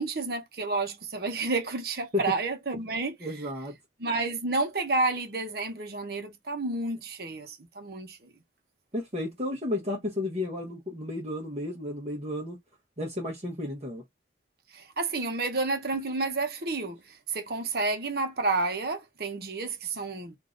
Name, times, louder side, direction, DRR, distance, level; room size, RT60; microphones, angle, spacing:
voice 1, 0.0-3.2 4.0-8.3 14.7-20.4, right 3 dB, 60° right, 1.0 m, -30 dB
voice 2, 3.2-3.8 8.9-12.6 13.0-14.0, left 2 dB, 35° right, 1.1 m, -32 dB
3.7 x 2.7 x 3.8 m
head